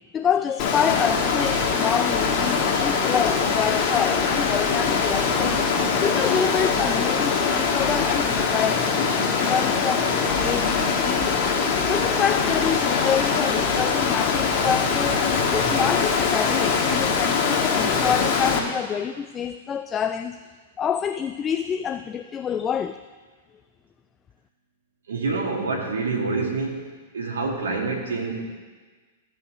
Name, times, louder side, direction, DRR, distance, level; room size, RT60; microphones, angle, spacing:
voice 1, 0.1-5.6 6.0-15.3 15.5-20.4 20.8-23.0, left 8 dB, 25° left, 9 dB, 0.4 m, -27 dB
Water, 0.6-18.6, left 5 dB, 40° left, 1.8 m, -22 dB
voice 2, 25.1-26.8 27.1-28.4, right 3 dB, 75° right, 0 dB, 2.3 m, -27 dB
14.5 x 5.8 x 6.6 m, 1.4 s
figure-of-eight pair, 105°, 0 cm